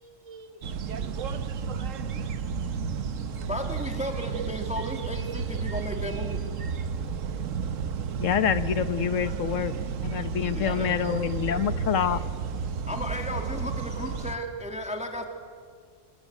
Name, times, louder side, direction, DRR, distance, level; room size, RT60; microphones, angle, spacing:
voice 1, 0.0-1.9 3.4-3.9 7.9-8.0 10.5-12.3, right 3 dB, 65° right, 5 dB, 2.1 m, -50 dB
sound 1, 0.6-14.4, right 6 dB, 85° right, 1.4 m, -32 dB
voice 2, 3.5-6.4 10.5-11.3 12.9-15.2, equal, 5° right, 4 dB, 1.9 m, -34 dB
voice 3, 8.2-9.7 10.0-12.2, left 8 dB, 85° left, 13 dB, 1.3 m, -26 dB
28.5 x 22.0 x 9.1 m, 2.1 s
omnidirectional pair, 1.3 m